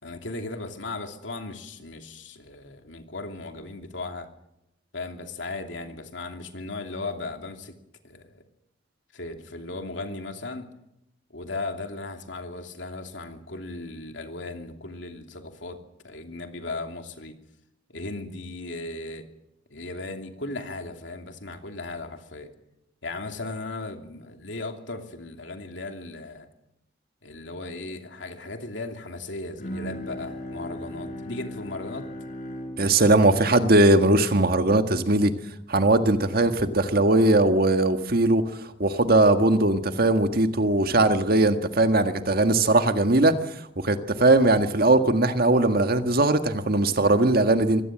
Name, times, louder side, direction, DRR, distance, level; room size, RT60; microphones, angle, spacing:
voice 1, 0.0-4.3 4.9-7.7 8.0-8.4 9.1-10.7 11.3-17.4 17.9-19.3 19.7-22.5 23.0-26.5 27.2-32.1, left 2 dB, 70° left, 5 dB, 2.8 m, -36 dB
Bowed string instrument, 29.6-35.0, equal, 45° left, 5.0 m, -38 dB
voice 2, 32.8-35.3 35.7-43.4 43.8-47.8, right 2 dB, 50° right, 8 dB, 1.7 m, -20 dB
24.0 x 18.0 x 7.6 m, 0.84 s
head